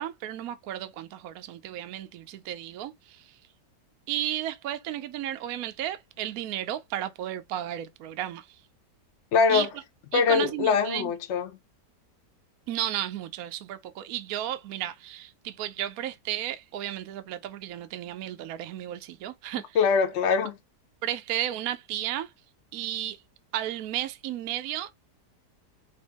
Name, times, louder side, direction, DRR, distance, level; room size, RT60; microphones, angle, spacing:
voice 1, 0.0-3.4 4.1-8.6 9.5-9.7 10.1-11.1 12.7-19.8 21.0-22.3 22.7-23.2 23.5-24.9, right 12 dB, 70° right, 1.0 m, -33 dB
voice 2, 9.3-9.7 10.1-11.5 19.8-20.5, left 6 dB, 55° left, 0.8 m, -23 dB
4.5 x 2.8 x 3.4 m
omnidirectional pair, 1.8 m